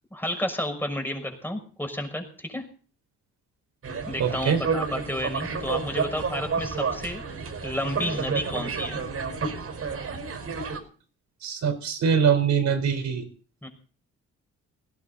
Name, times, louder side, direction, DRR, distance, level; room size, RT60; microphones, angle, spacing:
voice 1, 0.1-2.6 4.1-7.2 7.6-9.0 13.6-13.7, left 1 dB, 5° left, 4 dB, 5.8 m, -31 dB
sound 1, 3.8-10.8, right 5 dB, 50° right, 5.0 m, -30 dB
voice 2, 4.2-4.6 11.4-13.2, right 7 dB, 65° right, 8 dB, 4.4 m, -23 dB
19.0 x 16.5 x 4.2 m, 0.42 s
cardioid pair, 90°, 30 cm